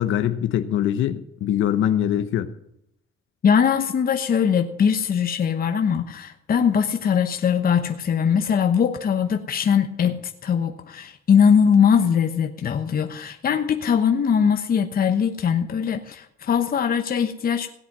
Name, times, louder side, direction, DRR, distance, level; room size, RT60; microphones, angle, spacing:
voice 1, 0.0-2.5, left 10 dB, 85° left, 1.0 m, -23 dB
voice 2, 3.4-17.7, left 7 dB, 50° left, 1.0 m, -21 dB
17.0 x 8.1 x 6.1 m
cardioid pair, 90°, 20 cm